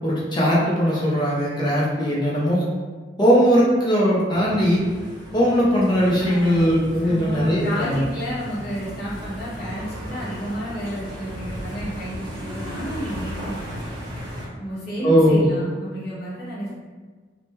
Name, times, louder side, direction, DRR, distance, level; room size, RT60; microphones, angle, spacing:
voice 1, 0.0-2.7 3.2-4.8 5.3-8.0 15.0-15.4, equal, 25° left, -7 dB, 0.6 m, -19 dB
sound 1, 4.3-14.5, equal, 25° right, 0.9 m, -35 dB
voice 2, 6.2-13.8 14.6-16.7, equal, 55° left, -9 dB, 1.1 m, -32 dB
3.1 x 2.1 x 2.9 m, 1.4 s
head